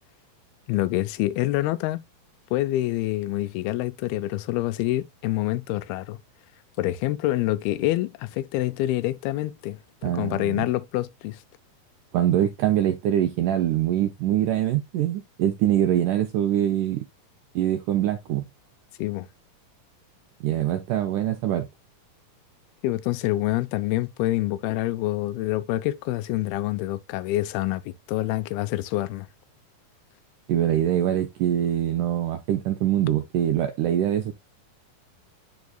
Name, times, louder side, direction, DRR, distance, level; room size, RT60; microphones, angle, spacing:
voice 1, 0.7-2.0 2.5-6.2 6.8-11.4 19.0-19.3 22.8-29.3, left 16 dB, 90° left, 2.5 m, -26 dB
voice 2, 10.0-10.7 12.1-17.1 17.6-18.5 20.4-21.7 30.5-34.3, right 11 dB, 85° right, 1.8 m, -24 dB
11.5 x 4.0 x 2.2 m
omnidirectional pair, 4.3 m